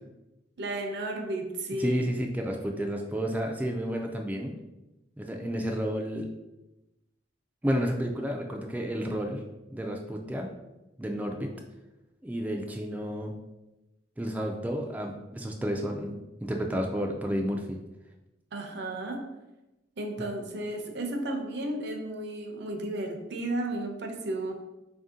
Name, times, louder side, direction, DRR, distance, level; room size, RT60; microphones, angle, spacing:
voice 1, 0.6-2.1 18.5-19.2 20.0-24.5, right 1 dB, 65° right, 4 dB, 0.6 m, -33 dB
voice 2, 1.8-4.5 5.2-6.3 7.6-9.4 9.7-10.5 11.0-11.5 12.2-13.3 14.2-17.8, equal, 10° right, 1 dB, 0.3 m, -31 dB
4.2 x 2.6 x 3.7 m, 0.98 s
head